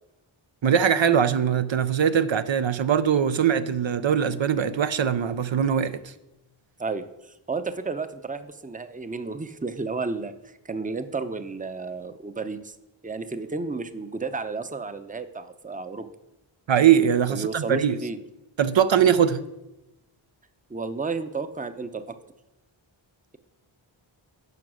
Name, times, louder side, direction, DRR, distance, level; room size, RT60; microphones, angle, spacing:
voice 1, 0.6-6.1 16.7-18.0 18.6-19.4, right 8 dB, 65° right, 0.6 m, -21 dB
voice 2, 6.8-12.8 13.0-16.1 17.3-18.2 20.7-22.1, right 4 dB, 15° right, 0.6 m, -32 dB
11.0 x 5.1 x 6.2 m
wide cardioid pair, 45°, 49 cm